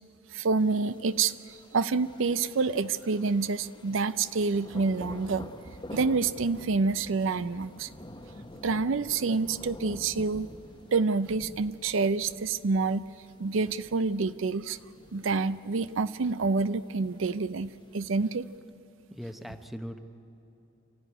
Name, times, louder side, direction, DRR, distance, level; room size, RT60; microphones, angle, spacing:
voice 1, 0.3-5.5 5.9-7.9 8.6-10.5 10.9-13.1 13.4-14.8 15.1-18.5, right 4 dB, 70° right, 15 dB, 0.5 m, -28 dB
Thunder, 0.6-18.6, left 1 dB, 20° left, 1.1 m, -48 dB
voice 2, 19.1-20.0, equal, ahead, 7 dB, 0.8 m, -39 dB
26.5 x 15.0 x 10.0 m, 2.9 s
head